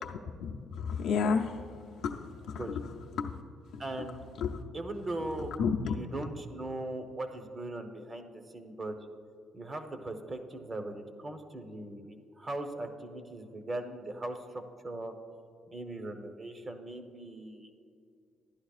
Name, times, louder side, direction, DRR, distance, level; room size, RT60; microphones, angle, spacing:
voice 1, 0.0-3.4 3.7-4.1 4.4-4.6 5.6-6.0, left 5 dB, 75° left, 0 dB, 0.6 m, -33 dB
voice 2, 3.8-4.2 4.7-5.5 5.9-9.0 9.5-15.1 15.7-17.7, right 2 dB, 30° right, 6 dB, 0.9 m, -39 dB
14.5 x 11.0 x 2.4 m, 2.3 s
cardioid pair, 95°, 0 cm